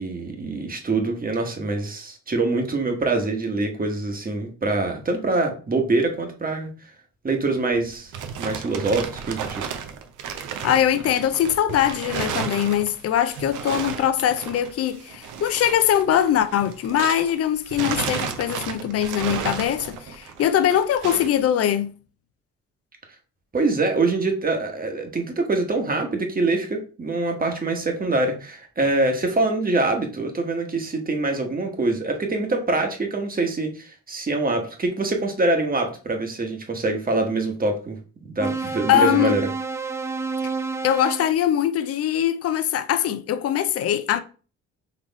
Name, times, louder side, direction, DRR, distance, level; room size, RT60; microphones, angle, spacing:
voice 1, 0.0-6.7 7.2-8.1 8.4-9.6 23.5-38.0 38.2-39.4, right 2 dB, 30° right, 1.2 m, -24 dB
sound 1, 7.7-17.4 17.7-21.4, right 7 dB, 85° right, 0.7 m, -33 dB
voice 2, 10.6-21.9 38.9-39.4 40.4-40.5 40.8-44.2, left 10 dB, 55° left, 0.5 m, -22 dB
sound 2, 38.4-41.3, right 4 dB, 10° right, 0.3 m, -28 dB
4.1 x 3.0 x 4.0 m
cardioid pair, 90°, 30 cm